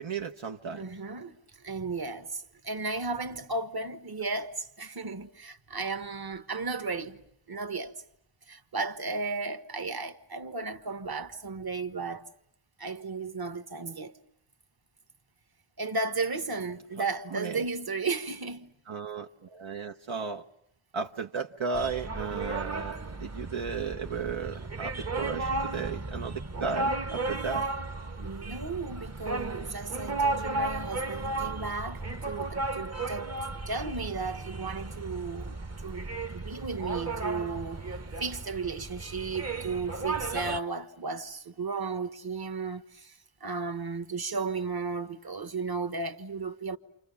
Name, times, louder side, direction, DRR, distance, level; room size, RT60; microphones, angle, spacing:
voice 1, 0.0-0.9 17.0-17.7 18.9-20.5 20.9-27.7, right 5 dB, 80° right, 1.0 m, -35 dB
voice 2, 0.7-1.4 1.6-7.2 7.5-8.0 8.5-12.3 12.8-14.2 15.8-18.7 28.2-46.8, right 4 dB, 50° right, 1.4 m, -35 dB
sound 1, 21.7-40.6, right 2 dB, 35° right, 1.0 m, -34 dB
29.5 x 27.5 x 6.9 m
wide cardioid pair, 60°, 47 cm